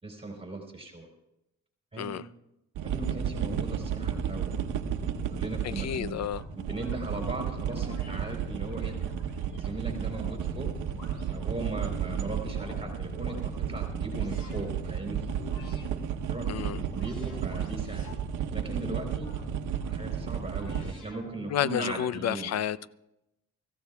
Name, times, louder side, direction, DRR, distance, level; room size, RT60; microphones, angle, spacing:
voice 1, 0.0-1.1 1.9-2.2 2.8-4.6 4.8-6.2 6.7-9.0 9.5-10.7 11.3-15.3 16.3-18.1 18.5-19.3 19.9-22.5, right 2 dB, 20° right, 3.6 m, -38 dB
sound 1, 2.8-20.9, right 8 dB, 80° right, 1.0 m, -33 dB
voice 2, 5.8-6.4 16.5-16.8 21.5-22.9, left 10 dB, 60° left, 0.6 m, -30 dB
sound 2, 6.3-7.0 7.7-8.2 8.7-10.5 10.9-11.8 12.3-13.4 14.1-14.7 15.3-15.9 16.4-18.2 18.7-20.0 20.5-21.7, left 2 dB, 90° left, 4.6 m, -49 dB
25.5 x 15.0 x 2.3 m
cardioid pair, 90°, 30 cm